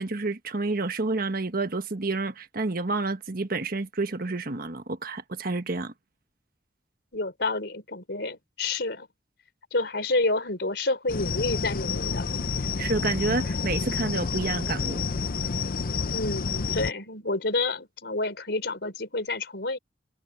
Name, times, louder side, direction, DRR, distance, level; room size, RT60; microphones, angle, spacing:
voice 1, 0.0-5.9 12.8-15.0, right 3 dB, 55° right, 1.4 m, -29 dB
voice 2, 7.1-9.1 9.7-12.3 16.1-19.8, left 2 dB, 70° left, 4.8 m, -29 dB
sound 1, 11.1-16.9, left 5 dB, 55° left, 0.7 m, -29 dB
head